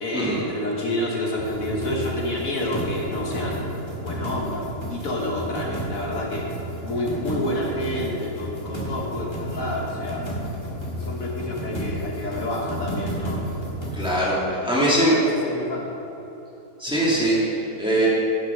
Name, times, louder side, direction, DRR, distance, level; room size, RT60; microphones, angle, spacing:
voice 1, 0.0-6.5 6.8-10.2 11.0-13.4 14.5-16.0, left 1 dB, 70° left, -2 dB, 1.6 m, -29 dB
sound 1, 1.4-14.2, equal, 20° left, 1.7 m, -32 dB
voice 2, 13.9-15.2 16.8-18.1, right 1 dB, 5° right, -7 dB, 2.1 m, -22 dB
10.5 x 6.1 x 5.6 m, 2.9 s
omnidirectional pair, 1.5 m